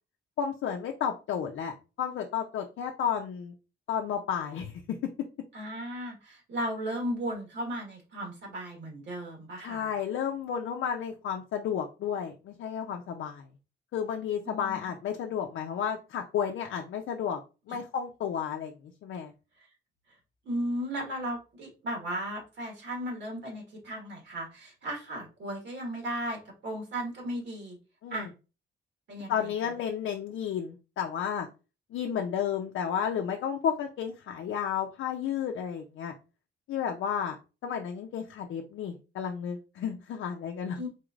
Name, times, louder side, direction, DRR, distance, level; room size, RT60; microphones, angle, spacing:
voice 1, 0.4-3.5 3.9-5.0 9.6-13.4 13.9-17.4 17.7-18.7 19.0-19.3 28.0-28.3 29.3-31.5 31.9-36.1 36.7-37.4 37.6-40.9, left 8 dB, 80° left, 2 dB, 0.5 m, -32 dB
voice 2, 5.5-9.9 14.4-14.9 17.7-17.8 20.4-27.8 28.1-28.3 29.1-29.7 40.8-40.9, equal, 65° right, 0 dB, 1.5 m, -36 dB
4.3 x 3.1 x 2.4 m, 0.31 s
wide cardioid pair, 150°, 20 cm